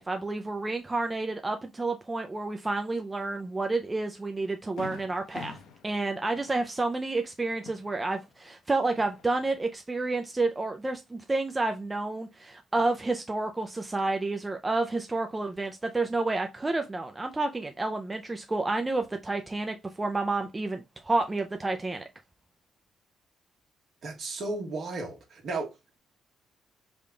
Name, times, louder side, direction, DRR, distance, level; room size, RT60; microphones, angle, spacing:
voice 1, 0.0-5.6 5.8-22.0, right 2 dB, 20° right, 0.4 m, -30 dB
Fireworks, 3.7-3.9 4.3-4.4 4.8-8.5 8.9-9.7, left 5 dB, 80° left, 0.7 m, -47 dB
voice 2, 24.0-25.7, right 3 dB, 55° right, 1.3 m, -34 dB
3.5 x 2.2 x 3.7 m
cardioid pair, 90°, 0 cm